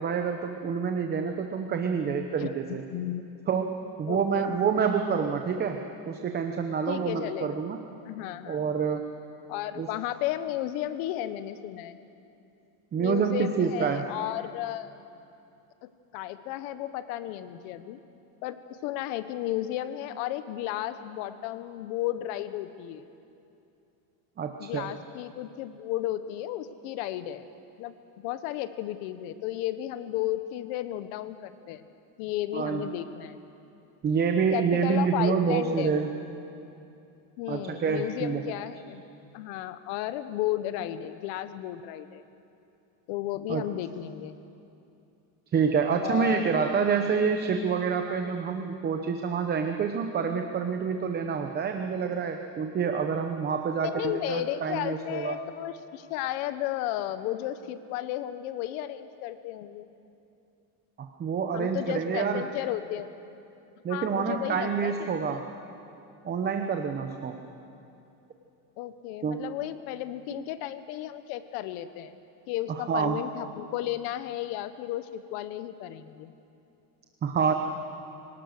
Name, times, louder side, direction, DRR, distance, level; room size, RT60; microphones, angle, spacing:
voice 1, 0.0-2.9 3.5-5.8 6.1-7.8 8.5-9.1 9.8-9.9 12.9-14.1 24.4-24.9 32.5-32.9 34.0-36.1 37.5-38.4 43.5-43.6 45.5-55.4 61.0-62.5 63.8-65.5 66.2-67.4 69.2-69.4 72.9-73.2 77.2-77.5, right 6 dB, 25° right, 5 dB, 0.8 m, -27 dB
voice 2, 2.9-3.2 4.1-4.4 6.9-7.6 8.0-8.6 9.5-12.0 13.0-15.0 15.8-18.0 18.4-23.0 24.6-27.5 27.8-31.8 32.2-33.3 34.5-36.0 37.4-39.0 39.3-42.2 43.1-44.4 46.0-46.6 48.1-48.4 53.8-59.9 61.5-63.1 63.9-65.4 68.8-72.1 72.5-76.3, left 13 dB, 80° left, 12 dB, 1.2 m, -33 dB
24.0 x 18.0 x 6.6 m, 2.7 s
cardioid pair, 160°, 42 cm